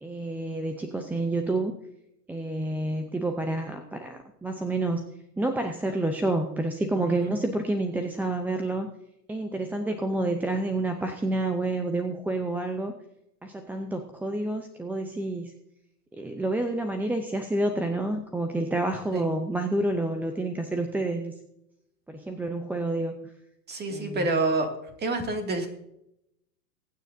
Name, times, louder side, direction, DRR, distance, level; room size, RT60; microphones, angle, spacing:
voice 1, 0.0-1.7 2.3-5.0 5.4-8.9 9.3-12.9 13.4-15.5 16.1-21.3 22.1-23.1 23.9-24.3 25.5-25.6, right 2 dB, 5° right, 6 dB, 0.6 m, -29 dB
voice 2, 23.7-24.7 25.0-25.7, right 2 dB, 20° right, 5 dB, 2.3 m, -27 dB
22.5 x 9.3 x 2.7 m, 0.82 s
hypercardioid pair, 120°, 49 cm